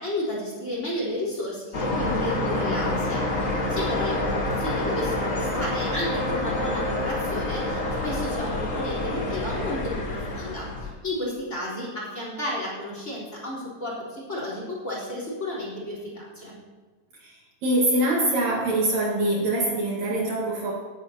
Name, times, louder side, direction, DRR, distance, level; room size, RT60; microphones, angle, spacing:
voice 1, 0.0-16.5, left 1 dB, 20° left, -4 dB, 4.0 m, -32 dB
sound 1, 1.7-10.9, left 2 dB, 45° left, 1.0 m, -27 dB
voice 2, 17.2-20.7, right 1 dB, 60° right, -3 dB, 2.7 m, -24 dB
20.0 x 10.0 x 2.9 m, 1.4 s
omnidirectional pair, 3.9 m